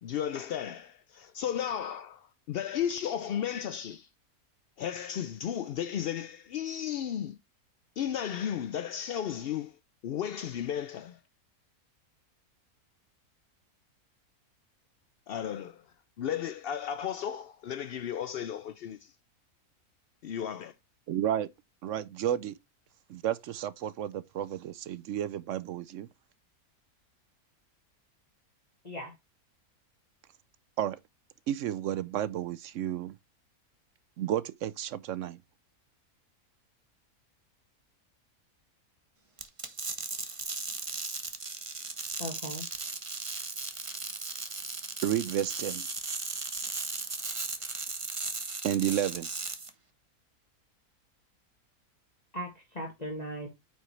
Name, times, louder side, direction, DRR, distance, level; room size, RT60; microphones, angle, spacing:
voice 1, 0.0-4.1 4.8-7.4 8.0-9.7 10.0-11.2 15.3-15.8 16.2-19.1 20.2-20.7, left 9 dB, 75° left, 0.5 m, -34 dB
voice 2, 21.1-21.5 21.8-22.6 23.1-26.1 30.8-31.0 31.5-33.2 34.2-35.4 45.0-45.9 48.6-49.3, right 11 dB, 65° right, 0.8 m, -31 dB
sound 1, 39.4-49.7, right 3 dB, 25° right, 0.9 m, -37 dB
voice 3, 42.2-42.7 52.3-53.5, equal, 25° left, 1.9 m, -38 dB
9.1 x 5.1 x 3.2 m
omnidirectional pair, 1.6 m